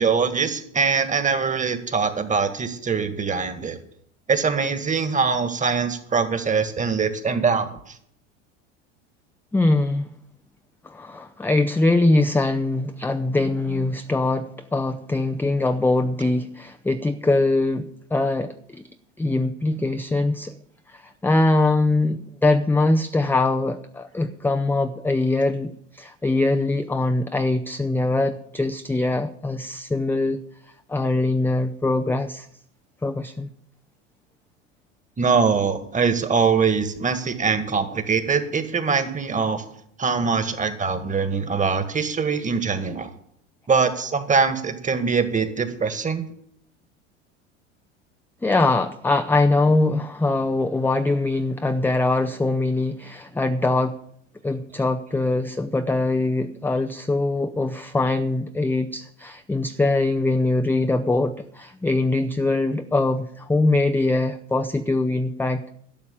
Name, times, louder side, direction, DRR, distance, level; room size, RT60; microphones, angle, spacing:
voice 1, 0.0-3.8 4.3-7.7 35.2-39.6 40.0-43.1 43.7-46.2, right 5 dB, 20° right, 10 dB, 1.8 m, -23 dB
voice 2, 9.5-10.1 10.8-18.8 19.2-20.5 20.9-30.4 30.9-32.5 33.0-33.5 48.4-54.0 54.4-65.6, left 2 dB, 5° left, 7 dB, 0.6 m, -22 dB
12.5 x 6.9 x 8.8 m, 0.67 s
hypercardioid pair, 85°, 35 cm